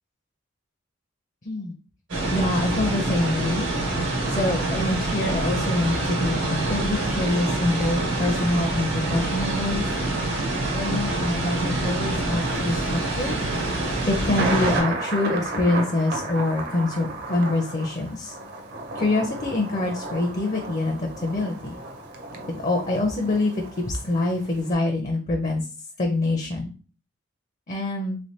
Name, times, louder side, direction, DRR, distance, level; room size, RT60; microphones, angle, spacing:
sound 1, 2.1-14.8, right 2 dB, 85° right, 1.5 m, -26 dB
voice 1, 2.3-3.7 4.3-9.8 10.7-13.4 14.0-18.3 18.9-21.8 22.5-25.7 26.0-26.7 27.7-28.2, left 2 dB, 40° left, 2 dB, 0.5 m, -25 dB
Thunder, 12.4-24.7, right 2 dB, 55° right, 0.6 m, -33 dB
3.3 x 3.2 x 2.7 m, 0.37 s
head